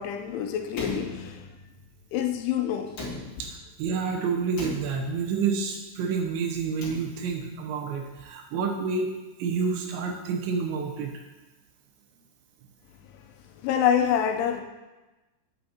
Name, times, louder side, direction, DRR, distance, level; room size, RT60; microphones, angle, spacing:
voice 1, 0.0-1.5 2.1-2.9 13.1-13.2 13.6-14.6, left 9 dB, 80° left, 3.0 m, -26 dB
Slam, 0.7-1.8 2.9-3.8 4.5-5.4 6.5-7.5, left 2 dB, 65° left, 1.1 m, -38 dB
voice 2, 3.8-9.1 9.4-11.1, right 5 dB, 75° right, 2.9 m, -28 dB
10.5 x 9.1 x 2.9 m
omnidirectional pair, 5.6 m